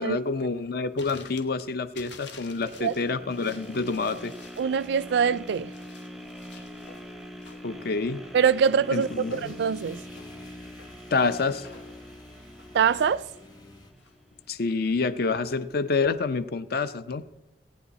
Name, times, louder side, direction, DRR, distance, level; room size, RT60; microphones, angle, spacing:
voice 1, 0.0-4.3 7.6-8.2 8.9-9.5 11.1-11.7 14.5-17.2, left 4 dB, 60° left, 0.6 m, -27 dB
sound 1, 1.0-16.2, left 5 dB, 85° left, 1.3 m, -51 dB
sound 2, 2.4-14.5 15.0-15.1, equal, ahead, 0.6 m, -44 dB
voice 2, 4.6-5.7 8.3-10.0 12.7-13.2, right 6 dB, 65° right, 0.3 m, -24 dB
sound 3, 7.7-13.9, left 1 dB, 25° left, 1.0 m, -51 dB
17.0 x 9.4 x 4.1 m
head